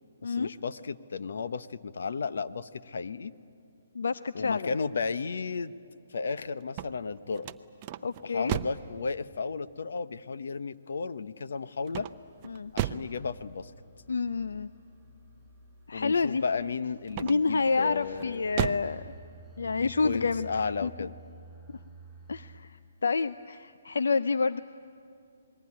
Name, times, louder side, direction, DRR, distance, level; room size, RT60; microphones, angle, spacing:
voice 1, 0.2-3.3 4.3-5.7 6.1-7.5 8.2-12.1 12.7-13.7 15.9-18.5 19.6-21.1, left 5 dB, 75° left, 13 dB, 0.9 m, -34 dB
voice 2, 3.9-4.7 8.0-8.5 12.4-12.7 14.1-14.7 15.9-16.4 17.2-19.1 19.6-20.5 20.8-20.9 21.7-21.8 22.3-24.6, left 4 dB, 90° left, 14 dB, 0.6 m, -28 dB
sound 1, 6.6-8.9 11.9-13.2 17.1-17.6 18.2-19.0, right 12 dB, 25° right, 0.6 m, -34 dB
sound 2, 11.7-22.6, right 3 dB, 5° right, 7.0 m, -53 dB
27.5 x 21.0 x 9.9 m, 2.4 s
hypercardioid pair, 165°, 0 cm